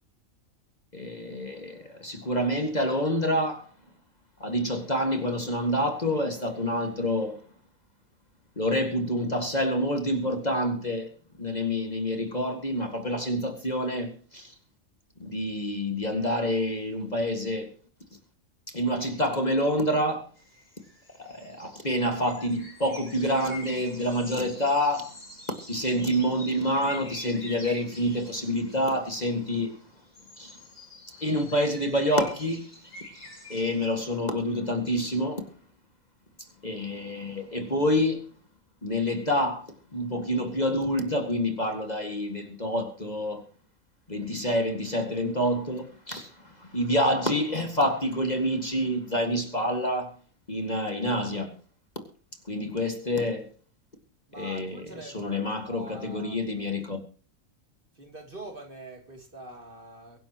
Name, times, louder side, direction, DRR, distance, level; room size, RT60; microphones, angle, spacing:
voice 1, 0.9-3.7 4.4-7.4 8.6-11.1 11.4-14.5 15.2-17.7 18.7-20.3 21.2-25.2 25.5-29.8 30.4-30.6 31.2-32.8 33.5-35.5 36.4-38.3 38.8-43.5 44.1-50.1 50.5-51.5 52.0-52.1 52.5-53.5 54.4-57.0, equal, 30° left, 2.1 m, -27 dB
sound 1, 20.4-29.5 30.0-33.9, left 1 dB, 55° left, 8.1 m, -46 dB
voice 2, 54.3-56.4 57.9-60.2, right 2 dB, 40° right, 3.3 m, -44 dB
23.5 x 11.5 x 3.0 m
omnidirectional pair, 1.4 m